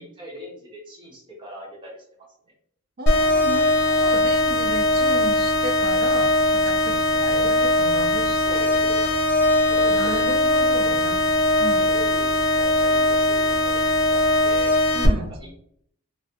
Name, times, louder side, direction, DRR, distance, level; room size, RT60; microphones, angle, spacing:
voice 1, 0.0-2.0 7.2-7.4 8.4-9.0 9.7-10.2 10.8-11.1 11.8-13.8 14.1-14.7 15.2-15.6, equal, 20° right, -3 dB, 0.8 m, -39 dB
voice 2, 3.0-8.7 9.9-11.3 11.6-11.9 14.9-15.3, right 2 dB, 45° right, 6 dB, 0.4 m, -34 dB
sound 1, 3.1-15.1, left 1 dB, 50° left, 0.5 m, -20 dB
3.1 x 2.4 x 2.7 m, 0.65 s
head